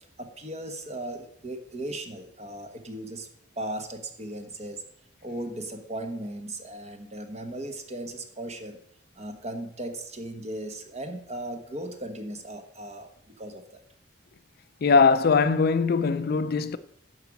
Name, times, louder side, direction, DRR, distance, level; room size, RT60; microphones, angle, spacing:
voice 1, 0.2-3.3 3.6-4.8 5.2-8.8 9.2-13.8, right 1 dB, 35° right, 1.3 m, -37 dB
voice 2, 14.8-16.8, left 4 dB, 55° left, 0.5 m, -21 dB
11.5 x 5.0 x 7.1 m
head